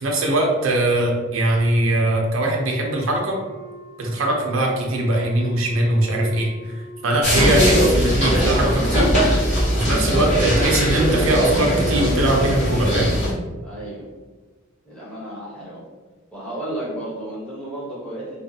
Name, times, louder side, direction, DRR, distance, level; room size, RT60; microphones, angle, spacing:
voice 1, 0.0-3.4 4.0-9.1 9.7-13.1, right 1 dB, 80° right, 0 dB, 0.6 m, -21 dB
Wind instrument woodwind instrument, 2.6-8.8, left 1 dB, 60° left, 1.2 m, -41 dB
sound 1, 7.2-13.3, equal, 40° left, 1.1 m, -20 dB
voice 2, 13.6-14.0 14.8-15.8 16.3-18.4, right 1 dB, 5° left, -9 dB, 0.8 m, -33 dB
2.6 x 2.4 x 2.6 m, 1.3 s
head